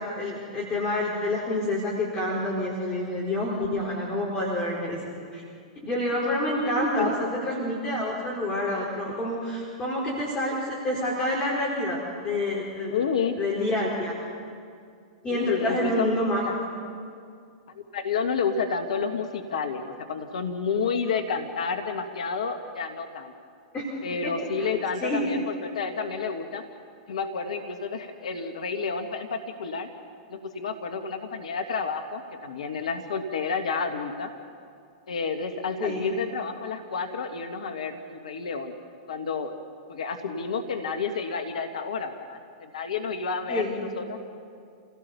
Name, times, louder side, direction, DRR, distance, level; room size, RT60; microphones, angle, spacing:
voice 1, 0.0-5.0 5.3-5.4 5.8-12.0 12.2-13.0 13.4-14.1 15.2-16.4 23.7-23.9 24.2-24.3 24.6-25.2 35.8-36.0 43.5-43.7, left 1 dB, 25° left, -4 dB, 4.8 m, -28 dB
voice 2, 12.9-13.4 15.3-16.1 16.4-16.5 17.7-23.3 24.0-26.6 27.1-29.9 30.3-34.3 35.1-38.7 39.1-39.5 39.9-44.2, left 5 dB, 70° left, 6 dB, 1.7 m, -30 dB
28.0 x 17.5 x 6.9 m, 2.3 s
hypercardioid pair, 105°, 4 cm